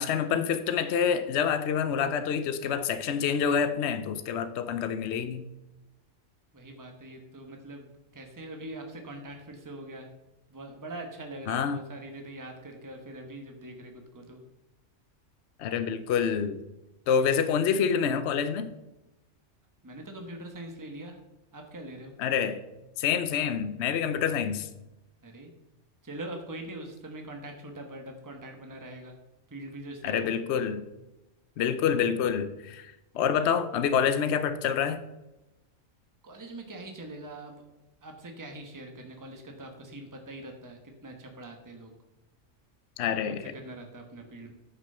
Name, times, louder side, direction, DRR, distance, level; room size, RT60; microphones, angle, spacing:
voice 1, 0.0-5.4 11.5-11.8 15.6-16.6 17.1-18.7 22.2-22.6 23.0-24.7 30.0-30.8 31.6-35.0 43.0-43.4, left 7 dB, 65° left, 11 dB, 0.9 m, -27 dB
voice 2, 6.5-7.9 8.1-10.1 10.5-14.4 19.8-21.2 21.5-22.1 25.2-25.5 26.0-29.2 29.5-30.3 36.2-37.6 38.0-41.9 43.4-44.5, right 1 dB, 15° right, 3 dB, 1.2 m, -43 dB
9.6 x 6.1 x 5.6 m, 0.98 s
omnidirectional pair, 1.3 m